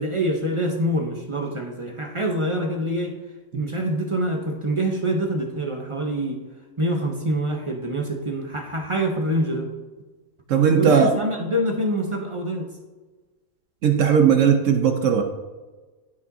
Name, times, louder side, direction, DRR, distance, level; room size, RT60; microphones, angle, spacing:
voice 1, 0.0-3.2 3.5-6.4 6.8-9.7 10.8-12.7, right 1 dB, 30° right, 2 dB, 0.6 m, -25 dB
voice 2, 10.5-11.1 13.8-15.2, right 7 dB, 70° right, 4 dB, 1.0 m, -17 dB
12.0 x 5.0 x 2.7 m, 1.3 s
omnidirectional pair, 1.5 m